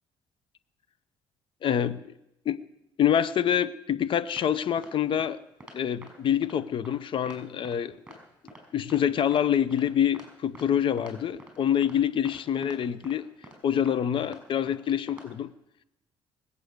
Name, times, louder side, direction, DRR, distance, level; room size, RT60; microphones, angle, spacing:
voice 1, 1.6-2.0 2.5-2.6 3.0-5.4 5.7-7.9 8.7-13.3 13.6-15.5, left 9 dB, 55° left, 16 dB, 0.7 m, -26 dB
sound 1, 4.4-4.5 4.8-4.9 5.2-5.3 5.6-5.8 6.0-6.1 6.4-6.6 6.8-6.9 7.3-7.4 7.6-7.8 8.1-8.2 8.5-8.6 8.9-9.0 9.3-9.4 9.7-9.8 10.1-10.3 10.5-10.7 11.0-11.1 11.4-11.6 11.8-12.0 12.3-12.4 12.6-12.8 13.0-13.1 13.4-13.6 13.9-14.0 14.2-14.4 14.7-14.8 15.1-15.3, right 1 dB, 10° right, 5.3 m, -47 dB
21.0 x 8.3 x 6.6 m, 0.89 s
cardioid pair, 100°, 11 cm